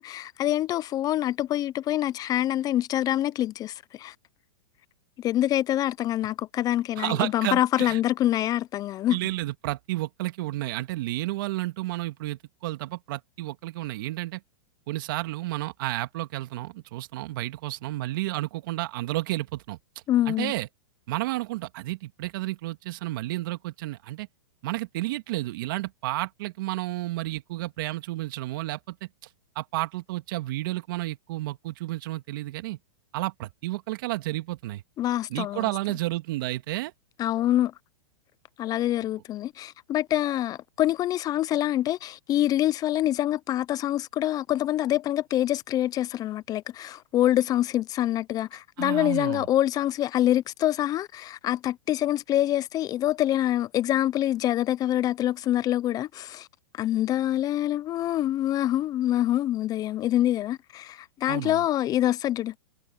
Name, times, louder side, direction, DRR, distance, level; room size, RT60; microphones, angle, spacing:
voice 1, 0.0-4.1 5.2-9.2 20.1-20.5 35.0-35.7 37.2-37.7 38.6-56.5 56.8-62.5, left 13 dB, 30° left, 0.8 m, -25 dB
voice 2, 7.0-8.0 9.1-14.4 14.9-19.8 20.3-20.7 21.1-24.3 24.6-29.3 29.6-32.8 33.1-34.8 35.3-36.9 48.8-49.5 61.3-61.6, right 18 dB, 60° right, 2.0 m, -31 dB
hypercardioid pair, 115°, 13 cm